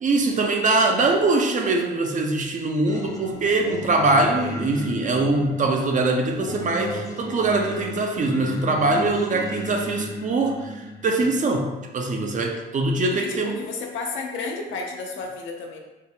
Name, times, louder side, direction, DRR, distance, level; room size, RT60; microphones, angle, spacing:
voice 1, 0.0-13.6, right 2 dB, 40° right, 3 dB, 0.5 m, -22 dB
Singing, 2.9-11.4, left 1 dB, 20° left, 0.4 m, -35 dB
voice 2, 13.2-15.8, left 4 dB, 75° left, 1 dB, 0.6 m, -32 dB
4.4 x 2.0 x 2.7 m, 1.1 s
cardioid pair, 90°, 20 cm